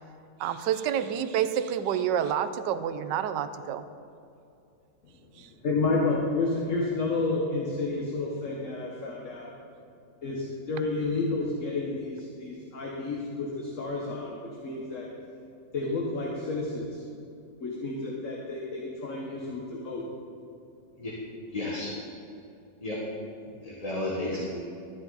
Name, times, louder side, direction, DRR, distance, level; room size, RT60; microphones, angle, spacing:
voice 1, 0.4-3.9 5.4-5.5, right 9 dB, 80° right, 11 dB, 1.2 m, -28 dB
voice 2, 5.6-9.5 10.2-14.4 14.6-15.1 15.7-17.0 17.6-20.0, left 3 dB, 45° left, -2 dB, 1.5 m, -30 dB
voice 3, 21.5-21.9 22.8-23.0 23.3-24.6, left 2 dB, 25° left, -5 dB, 1.3 m, -33 dB
12.5 x 10.5 x 4.0 m, 2.6 s
omnidirectional pair, 1.9 m